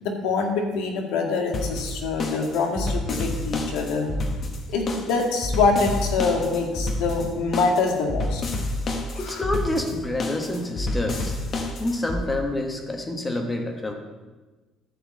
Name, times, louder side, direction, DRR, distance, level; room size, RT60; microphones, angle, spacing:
voice 1, 0.0-4.1 4.7-8.4 9.1-9.4, left 4 dB, 85° left, 2 dB, 1.8 m, -25 dB
sound 1, 1.5-12.2, left 2 dB, 35° left, 1.1 m, -29 dB
voice 2, 9.1-11.3 11.8-13.9, left 2 dB, 15° left, 3 dB, 1.3 m, -27 dB
11.5 x 4.6 x 7.5 m, 1.2 s
cardioid pair, 150°, 0 cm